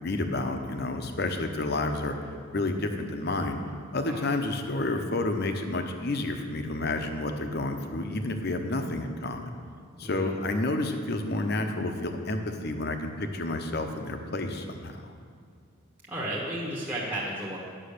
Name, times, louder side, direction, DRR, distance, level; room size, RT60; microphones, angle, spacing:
voice 1, 0.0-2.1 2.5-3.6 3.9-9.5 10.0-15.1, left 2 dB, 50° left, 5 dB, 0.8 m, -30 dB
voice 2, 10.0-10.4 16.1-17.6, right 1 dB, 10° right, -8 dB, 1.2 m, -33 dB
9.9 x 6.2 x 6.6 m, 2.3 s
head